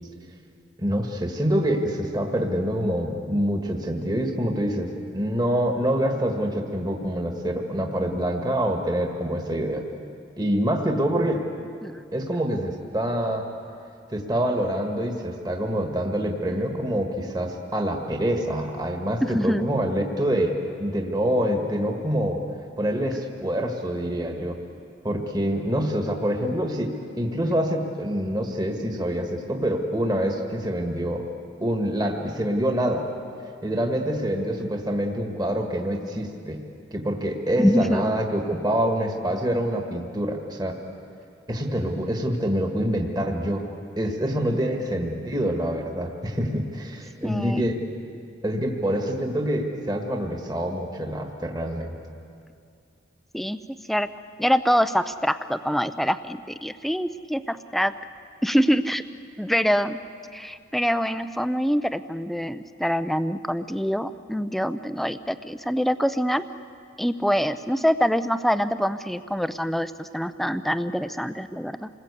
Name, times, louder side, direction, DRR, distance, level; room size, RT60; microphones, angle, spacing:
voice 1, 0.8-9.9 10.4-11.4 12.1-13.5 14.1-20.5 20.8-22.4 22.8-24.6 25.0-31.2 31.6-33.1 33.6-36.6 36.9-40.8 41.5-43.6 44.0-47.8 48.4-52.0, equal, 20° right, 3 dB, 1.6 m, -26 dB
voice 2, 19.2-19.7 37.6-38.0 47.2-47.7 53.3-53.6 53.9-54.1 54.4-57.9 58.4-59.0 59.4-60.0 60.3-66.4 67.0-71.9, equal, ahead, 12 dB, 0.5 m, -25 dB
28.0 x 20.5 x 8.3 m, 2.5 s
head